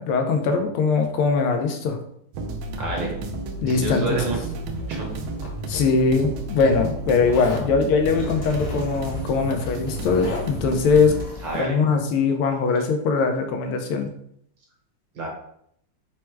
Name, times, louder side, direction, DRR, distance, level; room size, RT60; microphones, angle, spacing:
voice 1, 0.0-2.0 3.6-4.2 5.7-11.2 11.6-14.1, left 4 dB, 85° left, 5 dB, 1.5 m, -21 dB
sound 1, 2.3-11.2, right 2 dB, 80° right, 1.4 m, -32 dB
voice 2, 2.8-3.1 3.7-4.4 4.9-5.1 11.4-11.7 15.1-15.3, right 2 dB, 65° right, -1 dB, 1.7 m, -28 dB
sound 2, 3.3-11.6, left 2 dB, 45° left, 0.8 m, -40 dB
Zipper (clothing), 4.3-5.9 7.2-7.7 8.9-9.0 9.3-10.7, left 3 dB, 65° left, 1.6 m, -37 dB
4.6 x 2.1 x 4.5 m, 0.70 s
omnidirectional pair, 2.4 m